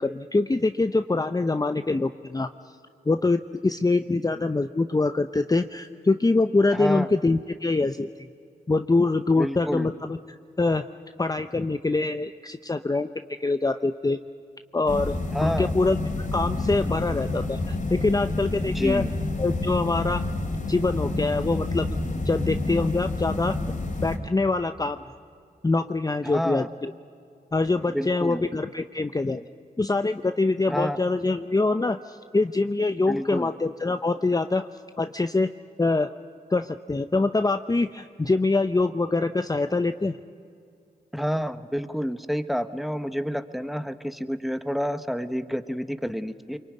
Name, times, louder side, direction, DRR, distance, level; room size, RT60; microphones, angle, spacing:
voice 1, 0.0-2.5 3.1-8.3 8.7-10.2 10.6-10.9 11.2-14.2 14.7-16.0 16.3-19.0 19.4-20.2 20.7-21.9 22.3-23.7 24.0-25.0 25.6-26.9 27.5-29.4 29.8-34.7 35.0-35.5 35.8-36.1 36.5-40.2, left 3 dB, 20° left, 9 dB, 0.7 m, -24 dB
voice 2, 6.7-7.1 9.4-9.9 15.3-15.7 18.7-19.1 26.2-26.7 27.9-28.4 30.7-31.0 33.1-33.5 41.1-46.6, equal, ahead, 10 dB, 1.3 m, -29 dB
sound 1, 14.9-24.2, left 2 dB, 50° left, 3.5 m, -29 dB
24.0 x 22.5 x 9.6 m, 2.4 s
cardioid pair, 50°, 17 cm